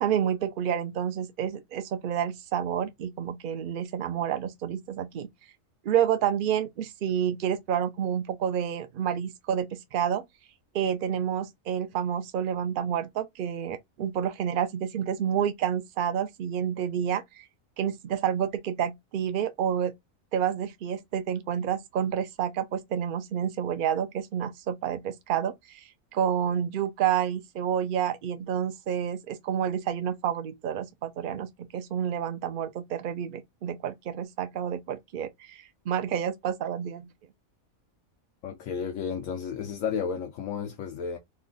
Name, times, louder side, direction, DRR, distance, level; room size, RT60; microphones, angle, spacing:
voice 1, 0.0-5.3 5.8-10.2 10.7-17.4 17.8-19.9 20.3-37.1, right 9 dB, 80° right, 0.4 m, -29 dB
voice 2, 38.4-41.2, left 7 dB, 75° left, 1.0 m, -32 dB
3.2 x 2.2 x 3.8 m
omnidirectional pair, 1.5 m